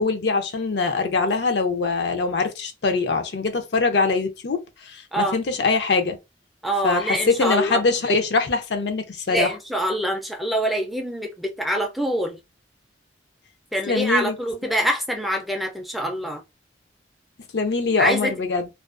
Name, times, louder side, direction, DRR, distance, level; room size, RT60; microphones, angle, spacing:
voice 1, 0.0-6.2 6.8-9.5 13.9-14.3 17.5-18.7, left 4 dB, 65° left, 0.5 m, -23 dB
voice 2, 6.6-7.8 9.3-12.4 13.7-16.4 18.0-18.3, equal, ahead, 0.3 m, -25 dB
2.4 x 2.2 x 2.4 m
head